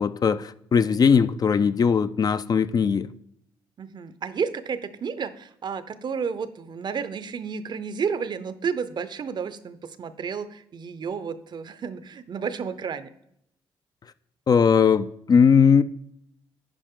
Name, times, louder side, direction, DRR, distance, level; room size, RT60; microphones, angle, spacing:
voice 1, 0.0-3.1 14.5-15.8, left 6 dB, 40° left, 0.4 m, -19 dB
voice 2, 3.8-13.1, right 6 dB, 50° right, 0.6 m, -31 dB
10.0 x 5.0 x 3.7 m
supercardioid pair, 70°, 10 cm